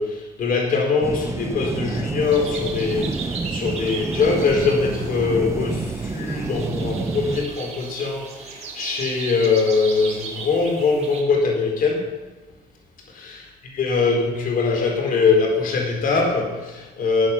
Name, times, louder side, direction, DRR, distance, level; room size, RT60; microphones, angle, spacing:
voice 1, 0.0-12.1 13.4-17.3, left 4 dB, 55° left, 1 dB, 4.1 m, -22 dB
sound 1, 1.0-7.5, right 3 dB, 15° right, 0.7 m, -28 dB
sound 2, 2.2-11.2, right 5 dB, 40° right, 3.4 m, -37 dB
14.0 x 8.7 x 6.1 m, 1.2 s
cardioid pair, 110°, 17 cm